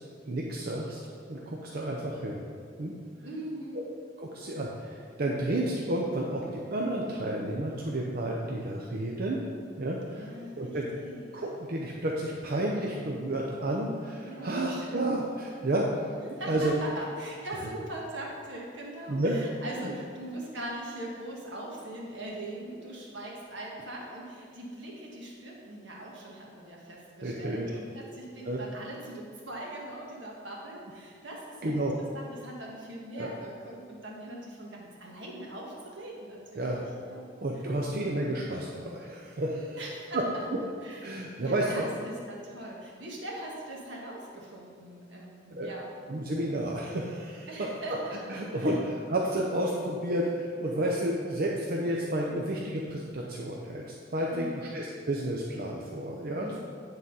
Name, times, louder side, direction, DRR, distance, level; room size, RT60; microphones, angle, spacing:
voice 1, 0.2-1.0 1.3-2.4 2.8-2.9 3.7-3.8 4.2-9.4 9.8-10.9 11.3-16.7 19.1-19.4 19.8-19.9 27.2-27.8 28.5-28.6 31.6-31.9 33.2-33.3 36.6-36.8 37.4-39.8 40.1-40.2 40.5-40.6 41.0-41.8 45.5-45.7 46.1-47.5 48.3-53.8 54.1-56.6, right 1 dB, 55° right, -2 dB, 0.7 m, -31 dB
voice 2, 3.2-3.9 10.0-11.3 14.2-14.7 16.3-37.3 38.3-38.4 39.5-40.5 40.8-45.9 47.5-48.2 48.6-48.8 54.3-54.6 56.4-56.6, right 1 dB, 75° right, -3 dB, 1.7 m, -41 dB
9.8 x 4.0 x 5.5 m, 2.1 s
head